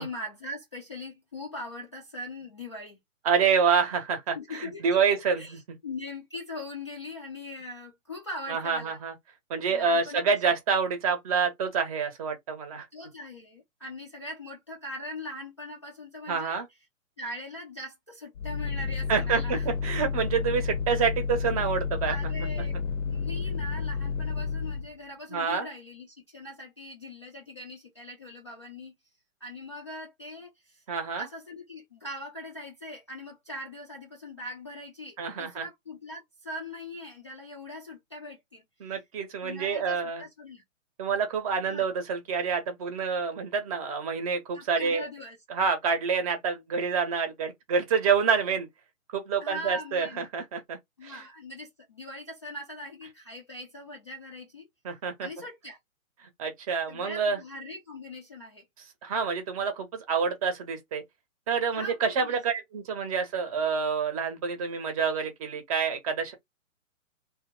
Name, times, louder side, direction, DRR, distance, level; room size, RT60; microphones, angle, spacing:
voice 1, 0.0-3.0 4.3-9.0 9.7-10.4 12.9-16.6 17.2-19.7 22.1-22.7 23.0-28.9 29.4-30.8 31.2-38.6 39.4-40.6 41.7-41.9 44.5-45.4 49.4-50.3 51.0-54.7 55.2-55.8 56.9-58.6 61.7-62.4, left 1 dB, 25° left, 0.3 m, -41 dB
voice 2, 3.2-5.4 8.5-9.1 9.5-12.9 16.3-16.7 19.1-22.1 25.3-25.7 30.9-31.2 35.2-35.6 38.8-40.2 41.0-45.1 45.5-48.7 49.1-51.1 54.8-55.3 56.4-57.4 59.0-61.0 61.5-66.3, right 6 dB, 25° right, 0.7 m, -27 dB
sound 1, 18.4-24.9, left 5 dB, 65° left, 0.7 m, -31 dB
2.8 x 2.0 x 3.5 m
hypercardioid pair, 140°, 41 cm